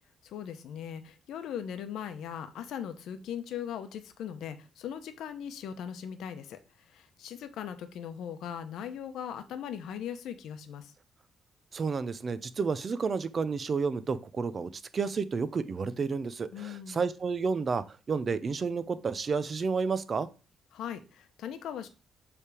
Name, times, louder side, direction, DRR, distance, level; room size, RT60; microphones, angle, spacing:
voice 1, 0.2-6.6 6.9-10.9 16.5-17.1 20.7-21.9, left 9 dB, 80° left, 8 dB, 0.9 m, -39 dB
voice 2, 11.7-20.3, right 5 dB, 40° right, 14 dB, 0.6 m, -31 dB
7.1 x 3.5 x 4.9 m, 0.34 s
cardioid pair, 90°, 0 cm